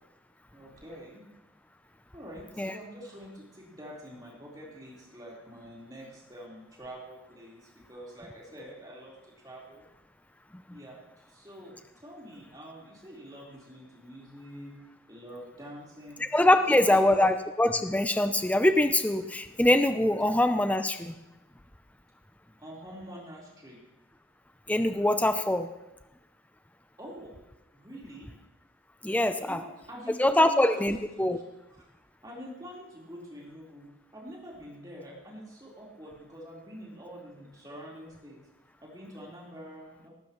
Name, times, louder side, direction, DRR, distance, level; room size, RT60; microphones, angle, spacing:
voice 1, 0.5-1.2 2.1-9.8 10.7-11.8 12.0-14.7 15.1-16.2 16.6-17.0 22.6-23.8 27.0-27.4 27.7-28.3 29.5-31.0 31.8-31.9 32.2-33.9 34.1-38.4 38.8-40.1, equal, 20° right, -5 dB, 4.0 m, -46 dB
voice 2, 16.2-21.1 24.7-25.7 29.0-29.6 30.2-31.4, left 1 dB, 5° left, 9 dB, 0.5 m, -24 dB
18.5 x 14.0 x 3.1 m, 0.97 s
head